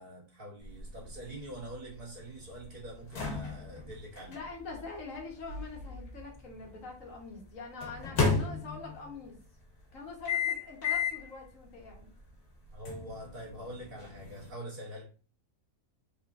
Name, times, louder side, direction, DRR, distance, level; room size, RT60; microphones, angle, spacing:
voice 1, 0.0-4.4 12.7-15.0, right 1 dB, 60° right, -6 dB, 2.0 m, -44 dB
sound 1, 0.6-6.7 7.8-9.1 10.3-11.3 11.8-11.9 12.9-14.5, left 5 dB, 80° left, 1.8 m, -34 dB
voice 2, 4.3-9.4 9.9-12.1, left 4 dB, 55° left, 0 dB, 1.6 m, -44 dB
4.9 x 3.7 x 2.5 m, 0.38 s
omnidirectional pair, 1.7 m